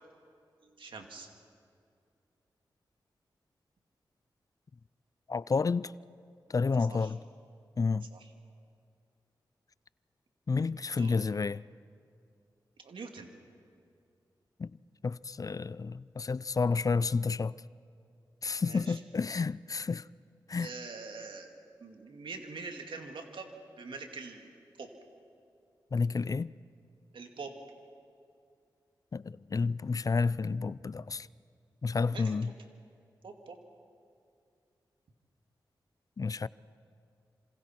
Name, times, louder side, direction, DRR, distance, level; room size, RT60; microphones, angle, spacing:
voice 1, 0.6-1.3 6.9-7.1 8.1-8.3 11.0-11.2 12.8-13.3 18.6-19.0 20.6-21.5 21.8-23.5 23.8-24.5 24.8-24.9 27.1-27.5 32.1-32.4 33.2-33.6, right 4 dB, 75° right, 2.5 m, -44 dB
voice 2, 5.3-5.9 6.5-7.2 7.8-8.1 10.5-11.6 14.6-14.7 15.0-17.6 18.4-20.1 20.5-20.7 25.9-26.5 29.1-31.3 31.8-32.5 36.2-36.5, left 4 dB, 45° left, 0.4 m, -30 dB
27.5 x 26.5 x 4.6 m
cardioid pair, 40°, 9 cm